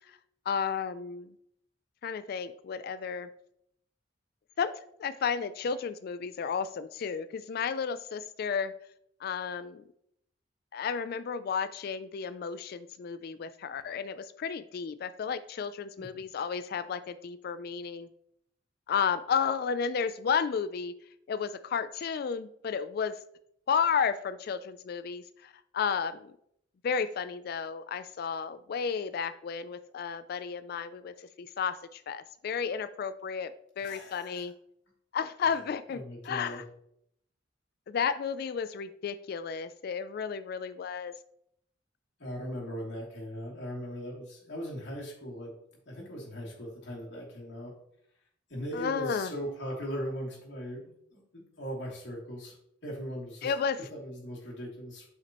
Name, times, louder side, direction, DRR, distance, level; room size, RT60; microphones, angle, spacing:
voice 1, 0.5-1.3 2.0-3.3 4.6-8.7 9.2-9.8 10.7-18.1 18.9-20.9 21.3-23.1 23.7-26.3 26.8-34.5 35.1-36.6 37.9-41.1 48.7-49.3 53.4-53.8, left 6 dB, 55° left, 13 dB, 0.3 m, -32 dB
voice 2, 33.8-34.5 35.9-36.6 42.2-45.5 45.9-47.7 48.5-50.8 51.1-52.6 52.8-53.5 53.9-55.0, equal, 70° left, -4 dB, 2.8 m, -39 dB
8.2 x 5.7 x 3.0 m, 0.72 s
head